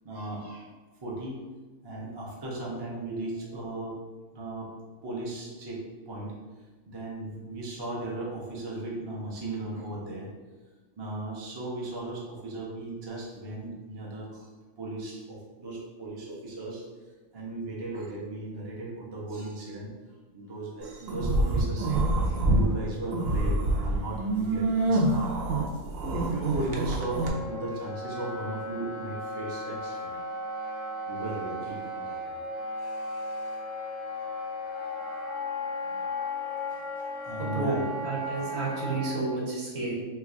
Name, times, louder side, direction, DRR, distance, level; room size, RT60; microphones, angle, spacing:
voice 1, 0.0-0.7 1.0-1.4 1.8-4.0 4.3-4.7 5.0-6.3 6.9-10.3 11.0-14.5 14.8-16.8 17.3-19.9 20.3-25.4 26.1-30.2 31.1-32.4 32.8-33.6 35.8-36.0 36.7-37.8, right 2 dB, 40° right, -4 dB, 0.3 m, -37 dB
sound 1, 21.1-22.7 23.0-27.3, right 2 dB, 80° right, 1.0 m, -26 dB
Wind instrument woodwind instrument, 27.1-39.2, left 1 dB, 40° left, 0.5 m, -35 dB
voice 2, 37.4-37.8 38.0-39.9, right 3 dB, 55° right, -4 dB, 1.1 m, -31 dB
3.1 x 2.3 x 3.7 m, 1.3 s
omnidirectional pair, 1.4 m